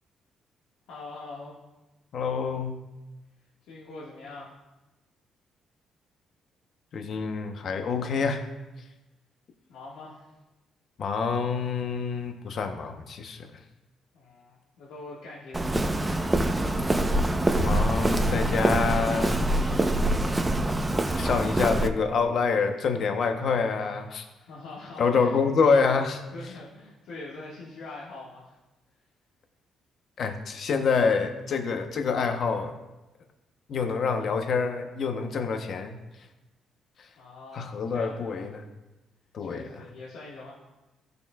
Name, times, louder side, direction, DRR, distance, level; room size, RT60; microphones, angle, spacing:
voice 1, 0.9-1.5 3.7-4.5 9.7-10.3 14.1-16.8 23.4-23.5 24.3-25.4 26.3-28.6 37.1-38.5 39.4-40.5, left 3 dB, 90° left, -6 dB, 1.6 m, -43 dB
voice 2, 2.1-2.7 6.9-8.4 11.0-13.5 17.5-19.9 21.1-24.2 25.0-26.2 30.2-32.8 33.7-36.0 37.5-38.6 39.3-39.6, left 5 dB, 60° left, 5 dB, 0.8 m, -27 dB
Walk footsteps, 15.5-21.9, right 1 dB, 15° right, 0.6 m, -25 dB
14.5 x 6.7 x 2.3 m, 1.1 s
cardioid pair, 90°, 0 cm